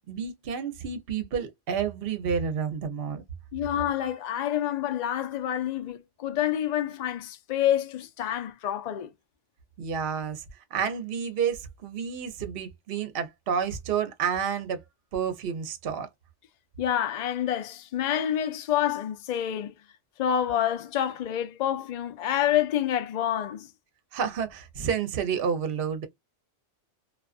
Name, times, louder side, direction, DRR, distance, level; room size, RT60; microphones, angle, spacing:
voice 1, 0.1-3.2 9.8-10.4 10.7-14.8 15.1-16.1 24.1-26.1, right 7 dB, 55° right, 0.8 m, -30 dB
voice 2, 3.5-9.1 16.8-19.7 20.2-23.7, left 10 dB, 55° left, 0.5 m, -28 dB
2.4 x 2.3 x 2.3 m
omnidirectional pair, 1.3 m